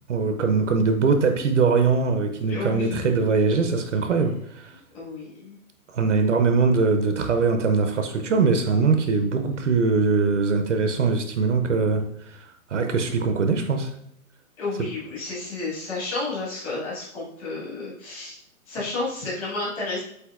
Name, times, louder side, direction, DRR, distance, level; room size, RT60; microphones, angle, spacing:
voice 1, 0.1-4.7 5.9-12.4 12.7-13.9, right 4 dB, 55° right, 6 dB, 0.5 m, -22 dB
voice 2, 2.5-3.2 4.9-5.6 14.6-18.3 18.7-20.0, left 3 dB, 25° left, -7 dB, 1.4 m, -31 dB
7.7 x 2.7 x 2.3 m, 0.73 s
hypercardioid pair, 165°, 44 cm